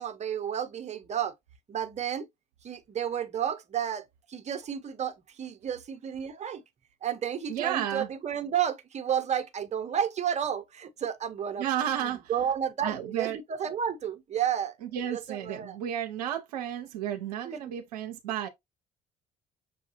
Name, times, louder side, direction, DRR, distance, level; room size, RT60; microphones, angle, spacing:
voice 1, 0.0-1.3 1.7-2.3 2.6-6.6 7.0-11.7 12.0-14.8 15.1-15.8 17.4-17.8, right 9 dB, 35° right, 0.8 m, -32 dB
voice 2, 7.5-8.1 11.6-12.3 12.8-13.4 14.8-18.5, right 10 dB, 75° right, 0.6 m, -32 dB
6.2 x 2.3 x 2.8 m
figure-of-eight pair, 55°, 21 cm